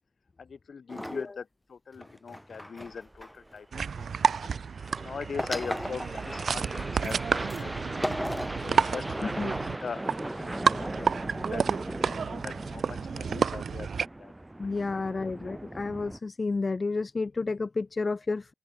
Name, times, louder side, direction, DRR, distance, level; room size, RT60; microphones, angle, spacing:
voice 1, 0.4-3.7 4.0-4.5 5.0-7.9 8.3-9.5 9.8-10.3 10.7-13.9 14.2-14.3, left 5 dB, 70° left, 5.7 m, -41 dB
sound 1, 0.9-1.2 1.9-3.9 5.4-6.5 7.0-7.1 7.5-7.6 8.0-8.6, equal, 5° left, 4.1 m, -36 dB
sound 2, 2.9-16.2, right 1 dB, 15° right, 3.4 m, -39 dB
sound 3, 3.7-14.1, right 6 dB, 80° right, 2.7 m, -30 dB
voice 2, 9.2-9.5 14.6-18.5, left 3 dB, 40° left, 1.0 m, -31 dB
open air
wide cardioid pair, 90°, 0 cm